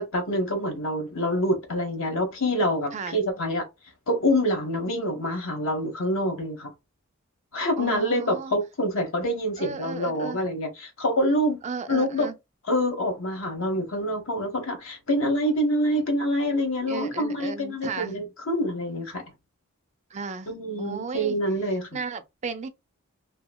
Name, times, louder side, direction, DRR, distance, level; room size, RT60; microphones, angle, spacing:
voice 1, 0.0-3.7 4.1-6.7 7.5-11.6 11.9-12.3 12.7-19.2 20.5-21.9, equal, 65° left, 1.0 m, -26 dB
voice 2, 7.8-8.5 9.6-10.4 11.6-12.4 16.9-18.2 20.1-20.5 20.8-21.4 21.9-22.7, right 5 dB, 35° right, 0.3 m, -34 dB
2.9 x 2.7 x 2.2 m
head